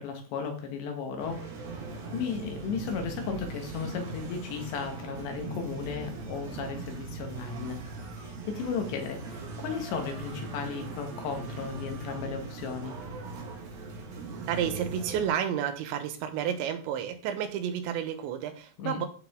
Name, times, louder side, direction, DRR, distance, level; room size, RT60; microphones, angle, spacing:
voice 1, 0.0-1.5 2.1-7.9 8.2-13.0 18.8-19.0, left 6 dB, 80° left, 4 dB, 3.8 m, -35 dB
sound 1, 1.2-15.3, right 3 dB, 60° right, 3.4 m, -40 dB
voice 2, 14.5-19.1, right 9 dB, 90° right, 8 dB, 3.4 m, -31 dB
14.0 x 5.1 x 3.7 m, 0.39 s
omnidirectional pair, 5.1 m